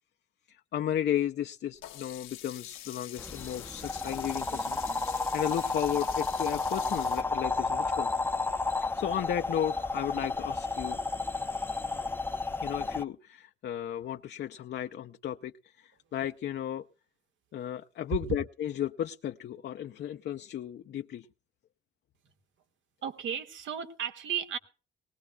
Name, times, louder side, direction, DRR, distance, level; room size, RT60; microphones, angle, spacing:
voice 1, 0.5-5.0 5.3-8.1 8.9-11.0 12.6-16.9 17.5-21.3, left 10 dB, 60° left, 0.6 m, -34 dB
Sink (filling or washing), 1.8-7.2, left 12 dB, 85° left, 1.1 m, -45 dB
sound 1, 3.2-13.0, left 3 dB, 10° left, 0.7 m, -32 dB
voice 2, 23.0-24.6, right 8 dB, 70° right, 1.8 m, -34 dB
20.0 x 19.0 x 2.3 m
cardioid pair, 90°, 20 cm